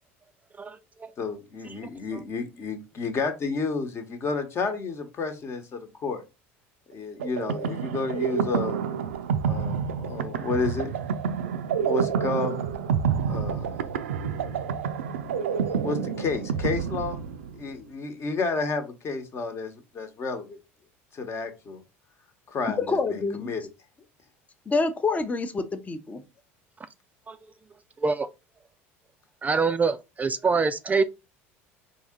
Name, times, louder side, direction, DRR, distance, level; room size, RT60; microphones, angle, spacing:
voice 1, 0.6-1.1 27.3-27.4 28.0-28.3 29.4-31.0, right 4 dB, 20° right, 0.3 m, -25 dB
voice 2, 1.2-6.2 6.9-8.8 9.4-10.9 11.9-12.8 13.3-13.7 15.8-17.2 17.5-20.6 21.1-21.8 22.5-23.6, left 4 dB, 40° left, 1.1 m, -31 dB
sound 1, 7.2-17.7, right 7 dB, 85° right, 0.4 m, -28 dB
voice 3, 22.8-23.5 24.7-26.2, left 3 dB, 20° left, 0.6 m, -27 dB
4.0 x 2.8 x 3.6 m
hypercardioid pair, 80°, 7 cm